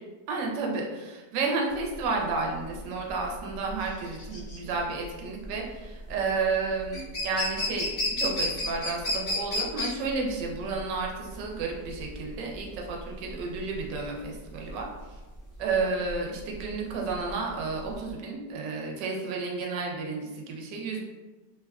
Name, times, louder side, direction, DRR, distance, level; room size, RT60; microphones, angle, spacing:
voice 1, 0.3-7.9 8.2-14.9 15.6-21.0, right 4 dB, 85° right, 0 dB, 1.2 m, -31 dB
sound 1, 1.8-18.1, left 1 dB, 65° left, 0.4 m, -33 dB
3.2 x 2.3 x 2.2 m, 1.2 s
omnidirectional pair, 1.9 m